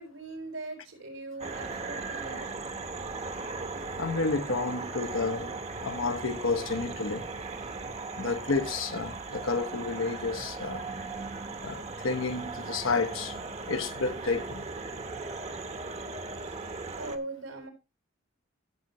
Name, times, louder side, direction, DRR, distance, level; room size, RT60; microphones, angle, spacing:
voice 1, 0.0-2.5 11.7-11.9 16.5-17.7, right 2 dB, 90° right, 4.4 m, -41 dB
sound 1, 1.4-17.2, right 3 dB, 35° right, 1.0 m, -38 dB
voice 2, 4.0-5.6 5.8-7.3 8.2-10.8 11.6-13.4 13.7-14.6, left 4 dB, 80° left, 1.1 m, -30 dB
14.5 x 7.5 x 2.9 m
head